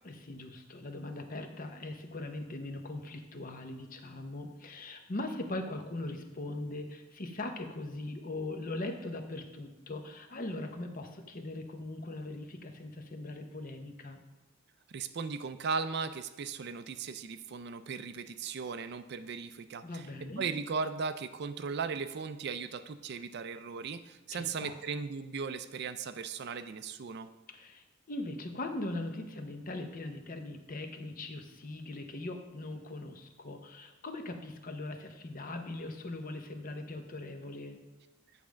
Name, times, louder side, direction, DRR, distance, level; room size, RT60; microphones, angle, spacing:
voice 1, 0.0-14.2 19.8-20.4 24.3-24.7 27.5-37.8, left 2 dB, 45° left, 6 dB, 0.8 m, -40 dB
voice 2, 14.9-20.1 20.4-27.3, right 5 dB, 55° right, 11 dB, 0.4 m, -37 dB
8.4 x 3.5 x 6.2 m, 1.1 s
head